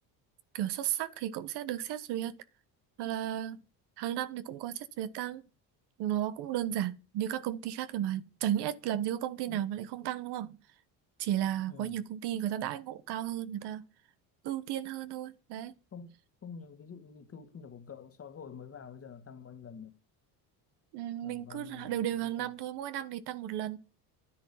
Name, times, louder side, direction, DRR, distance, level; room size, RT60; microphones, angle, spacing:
voice 1, 0.5-2.4 3.0-3.6 4.0-5.4 6.0-10.6 11.2-13.8 14.4-15.7 20.9-23.8, right 12 dB, 75° right, 1.2 m, -34 dB
voice 2, 11.7-12.0 15.9-16.1 16.4-20.0 21.2-22.5, left 6 dB, 35° left, 1.7 m, -48 dB
10.0 x 10.0 x 8.5 m
cardioid pair, 105°, 40 cm